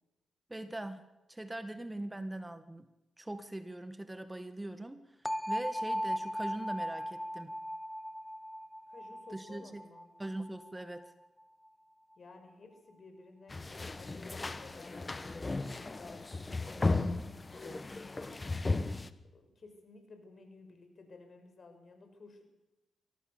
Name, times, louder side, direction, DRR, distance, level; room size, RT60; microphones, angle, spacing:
voice 1, 0.5-1.0 1.3-2.9 3.2-7.5 9.3-9.8 10.2-11.1, right 1 dB, 15° right, 10 dB, 1.7 m, -41 dB
sound 1, 5.3-11.1, equal, 5° left, 0.9 m, -38 dB
voice 2, 8.9-10.1 12.2-16.6 17.4-18.6 19.3-22.4, left 3 dB, 50° left, 5 dB, 6.3 m, -54 dB
sound 2, 13.5-19.1, left 3 dB, 30° left, 1.4 m, -35 dB
24.5 x 17.5 x 7.1 m, 0.97 s
supercardioid pair, 50°, 0 cm